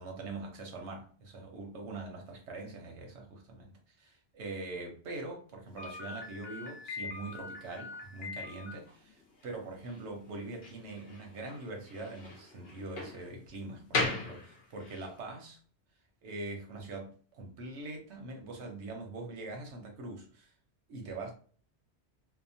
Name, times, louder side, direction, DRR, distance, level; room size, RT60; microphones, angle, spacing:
voice 1, 0.0-15.6 16.2-20.5 20.9-21.3, right 2 dB, 80° right, 1.1 m, -43 dB
Slam, 5.8-15.1, left 3 dB, 65° left, 0.9 m, -40 dB
2.8 x 2.1 x 2.6 m
omnidirectional pair, 1.1 m